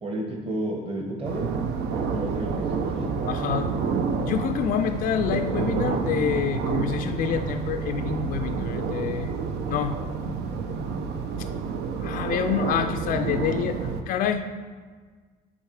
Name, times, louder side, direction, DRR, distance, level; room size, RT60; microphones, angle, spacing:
voice 1, 0.0-1.5 1.9-3.0, right 1 dB, 35° right, -1 dB, 1.3 m, -32 dB
sound 1, 1.2-14.0, right 5 dB, 75° right, 0.7 m, -29 dB
voice 2, 3.3-3.7 4.3-9.3 9.7-10.0 12.0-14.5, left 8 dB, 55° left, 7 dB, 0.4 m, -27 dB
9.9 x 3.9 x 4.8 m, 1.5 s
cardioid pair, 110°, 17 cm